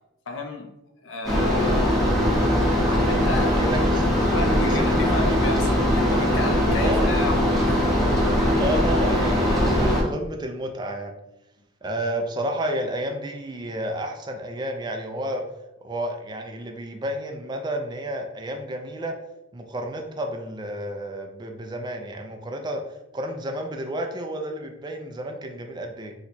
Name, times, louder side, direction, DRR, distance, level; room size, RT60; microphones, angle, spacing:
voice 1, 0.3-0.7 1.0-2.1 2.9-3.6 4.3-8.0, left 2 dB, 80° left, 3 dB, 0.6 m, -33 dB
sound 1, 1.2-10.0, equal, ahead, 0.7 m, -21 dB
voice 2, 3.6-4.0 4.6-5.4 6.8-7.1 8.6-11.1 11.8-15.4 15.8-19.2 19.5-22.8 23.1-26.1, right 1 dB, 20° right, 4 dB, 0.3 m, -31 dB
2.9 x 2.2 x 4.0 m, 0.92 s
head